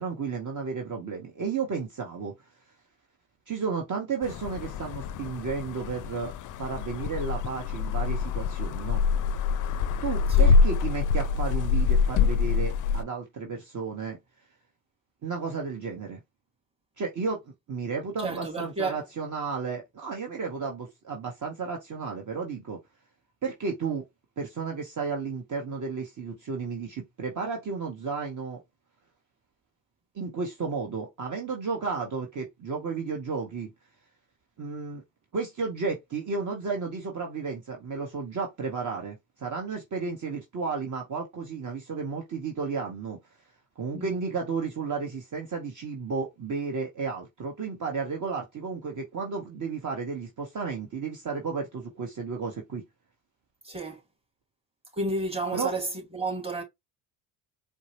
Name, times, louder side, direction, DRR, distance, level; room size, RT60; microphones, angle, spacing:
voice 1, 0.0-2.3 3.5-9.0 10.0-14.2 15.2-16.2 17.0-17.4 17.7-22.8 23.4-24.0 24.4-28.6 30.1-33.7 34.6-35.0 35.3-43.2 43.8-52.8 55.5-55.7, right 5 dB, 40° right, 1.2 m, -33 dB
sound 1, 4.2-13.0, left 5 dB, 45° left, 0.4 m, -25 dB
voice 2, 18.2-19.0 43.9-44.2 53.6-54.0 54.9-56.6, right 2 dB, 10° right, 1.9 m, -32 dB
4.5 x 2.2 x 2.9 m
supercardioid pair, 65°, 47 cm